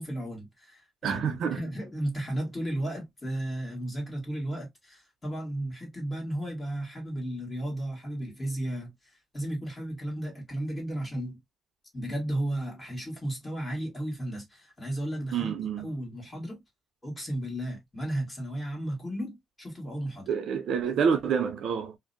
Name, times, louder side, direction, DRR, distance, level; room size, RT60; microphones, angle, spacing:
voice 1, 0.0-11.4 11.9-16.6 17.0-20.3, right 1 dB, 25° left, 1.3 m, -34 dB
voice 2, 1.0-1.6 15.3-15.9 20.3-22.0, right 7 dB, 70° right, 0.5 m, -27 dB
2.5 x 2.1 x 2.5 m
cardioid pair, 90°, 0 cm